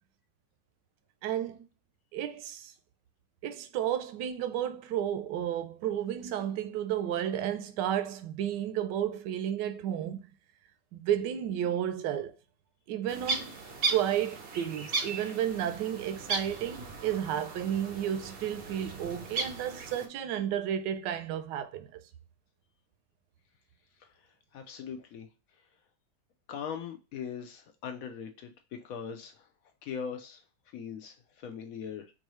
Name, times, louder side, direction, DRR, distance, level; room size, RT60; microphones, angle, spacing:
voice 1, 1.2-1.6 2.1-2.7 3.4-10.2 10.9-12.3 12.9-13.5 13.9-22.0, right 10 dB, 80° right, 1.2 m, -32 dB
sound 1, 13.1-20.1, right 4 dB, 60° right, 0.6 m, -36 dB
voice 2, 24.5-25.3 26.5-29.5 29.8-32.1, left 7 dB, 70° left, 0.8 m, -41 dB
4.6 x 2.6 x 3.0 m
omnidirectional pair, 1.9 m